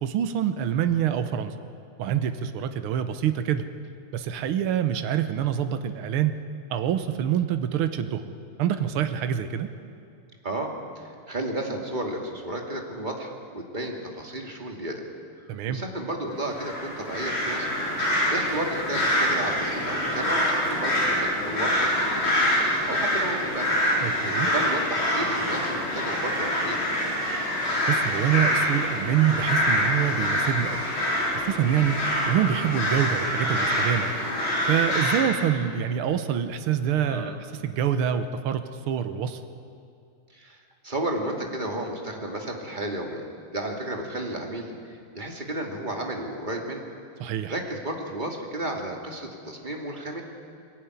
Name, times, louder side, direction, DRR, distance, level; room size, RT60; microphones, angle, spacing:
voice 1, 0.0-1.5 2.0-3.7 4.1-6.4 6.7-8.3 8.6-9.7 15.5-15.8 24.0-24.5 27.9-30.8 31.4-34.1 34.7-39.4 47.2-47.5, right 9 dB, 80° right, 9 dB, 1.9 m, -26 dB
voice 2, 10.4-15.0 15.7-17.7 18.3-22.5 22.8-23.7 24.4-26.8 37.1-37.4 40.3-40.6 40.8-43.2 43.5-46.8 47.5-50.2, right 1 dB, 20° right, 1 dB, 2.6 m, -32 dB
sound 1, 16.5-35.2, equal, 65° left, 5.1 m, -25 dB
22.0 x 17.5 x 9.7 m, 2.5 s
omnidirectional pair, 2.4 m